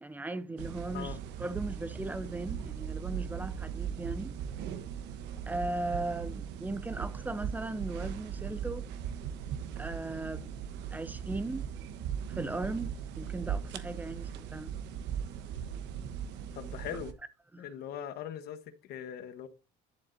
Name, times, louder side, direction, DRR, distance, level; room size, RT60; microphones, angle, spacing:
voice 1, 0.0-4.4 5.4-8.9 9.8-10.5 10.9-11.6 12.3-14.7 17.5-17.7, right 2 dB, 10° right, 0.5 m, -37 dB
sound 1, 0.6-17.1, right 8 dB, 80° right, 1.1 m, -39 dB
voice 2, 16.5-17.1 17.6-19.5, left 9 dB, 65° left, 1.3 m, -40 dB
11.0 x 7.2 x 2.7 m
cardioid pair, 145°, 18 cm